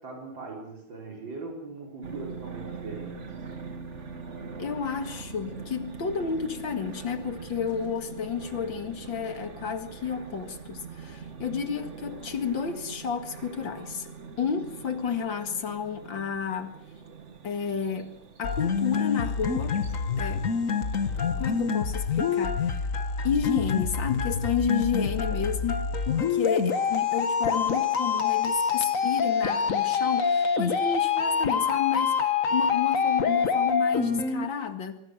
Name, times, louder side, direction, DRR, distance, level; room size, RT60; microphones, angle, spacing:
voice 1, 0.0-3.3, right 3 dB, 80° right, 5.0 m, -40 dB
sound 1, 2.0-21.7, right 5 dB, 40° right, 1.8 m, -43 dB
voice 2, 4.6-14.1 14.4-16.8 17.4-18.1 18.4-19.8 20.2-20.5 21.4-22.9 23.2-25.7 26.1-35.0, left 6 dB, 80° left, 2.6 m, -31 dB
sound 2, 18.4-34.5, left 6 dB, 45° left, 1.6 m, -26 dB
24.5 x 23.5 x 6.4 m
omnidirectional pair, 2.0 m